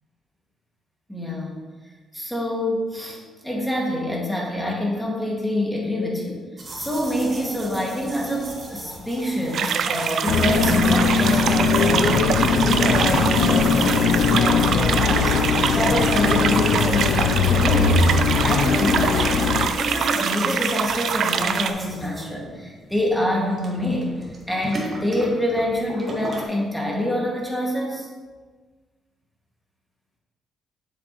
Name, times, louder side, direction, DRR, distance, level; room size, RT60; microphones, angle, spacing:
voice 1, 1.1-1.7 2.1-6.5 6.7-19.5 19.8-24.2 24.5-28.1, left 1 dB, 5° left, -3 dB, 2.1 m, -26 dB
sound 1, 6.6-26.4, right 2 dB, 40° right, 1.9 m, -37 dB
sound 2, 9.5-21.7, right 7 dB, 65° right, 0.4 m, -25 dB
sound 3, 10.3-19.7, left 5 dB, 85° left, 0.5 m, -20 dB
7.7 x 7.2 x 3.1 m, 1.4 s
cardioid pair, 90°, 0 cm